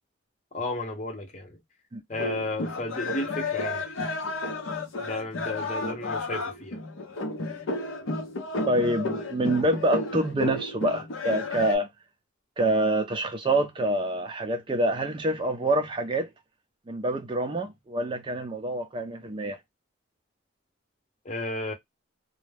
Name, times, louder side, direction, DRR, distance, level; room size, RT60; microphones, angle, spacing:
voice 1, 0.5-1.6 2.1-4.1 5.0-6.8 21.2-21.7, left 2 dB, 35° left, 0.6 m, -33 dB
sound 1, 2.1-11.8, left 3 dB, 85° left, 0.7 m, -32 dB
voice 2, 8.7-11.9 12.6-16.3 16.9-19.6, right 1 dB, 25° right, 0.4 m, -26 dB
2.2 x 2.0 x 3.1 m
head